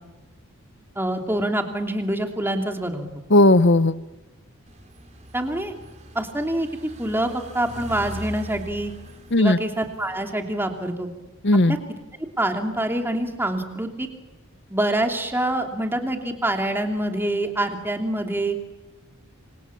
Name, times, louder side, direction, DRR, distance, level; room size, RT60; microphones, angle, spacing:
voice 1, 0.9-3.1 5.3-5.7 6.1-6.7 7.0-8.9 9.4-11.1 11.7-11.8 12.4-14.1 14.7-18.6, right 1 dB, 10° right, 4 dB, 2.9 m, -25 dB
voice 2, 3.3-4.0 9.3-9.6 11.4-11.8, left 2 dB, 50° left, 15 dB, 1.0 m, -16 dB
sound 1, 4.7-10.9, equal, 30° right, 3.3 m, -41 dB
28.5 x 26.0 x 7.3 m, 1.1 s
head